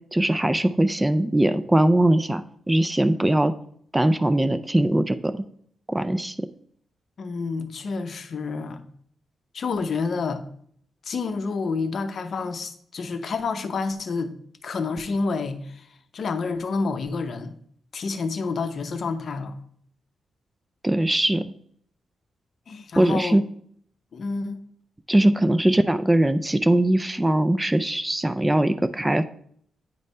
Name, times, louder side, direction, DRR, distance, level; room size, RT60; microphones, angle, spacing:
voice 1, 0.1-3.5 3.9-5.4 5.9-6.5 20.8-21.5 23.0-23.4 25.1-29.2, right 1 dB, 10° right, 12 dB, 0.3 m, -21 dB
voice 2, 7.2-8.8 9.5-10.4 11.0-14.3 14.6-15.9 16.1-17.5 17.9-19.5 22.7-23.4 24.1-24.6, left 4 dB, 50° left, 8 dB, 0.7 m, -29 dB
9.0 x 3.2 x 5.4 m, 0.63 s
cardioid pair, 125°, 0 cm